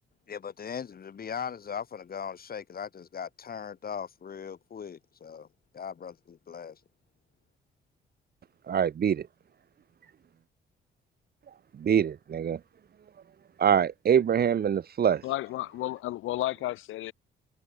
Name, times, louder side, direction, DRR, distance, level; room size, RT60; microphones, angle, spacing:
voice 1, 0.3-5.5 5.7-6.8, left 7 dB, 50° left, 5.2 m, -39 dB
voice 2, 8.7-9.3 11.8-12.6 13.6-15.2, right 8 dB, 50° right, 1.7 m, -24 dB
voice 3, 15.2-17.1, left 16 dB, 90° left, 2.6 m, -32 dB
cardioid pair, 90°, 20 cm